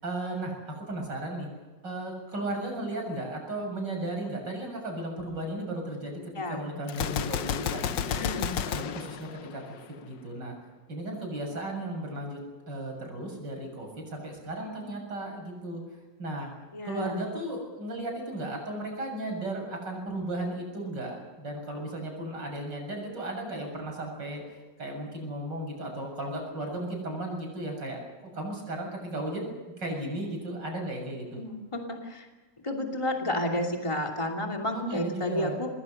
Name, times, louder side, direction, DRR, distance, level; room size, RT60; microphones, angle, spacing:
voice 1, 0.0-1.5 1.8-6.2 6.5-8.2 8.7-10.6 10.9-12.4 12.7-15.8 16.2-16.5 16.8-28.0 28.3-29.5 29.8-31.4 34.7-35.6, right 1 dB, 80° right, 1 dB, 7.7 m, -35 dB
voice 2, 6.4-6.7 8.1-8.5 16.7-17.2 31.4-32.3 32.6-35.7, left 1 dB, 15° left, 2 dB, 2.7 m, -31 dB
Gunshot gunfire, 6.9-10.0, left 9 dB, 85° left, 1.6 m, -32 dB
26.5 x 20.5 x 6.6 m, 1.2 s
omnidirectional pair, 1.9 m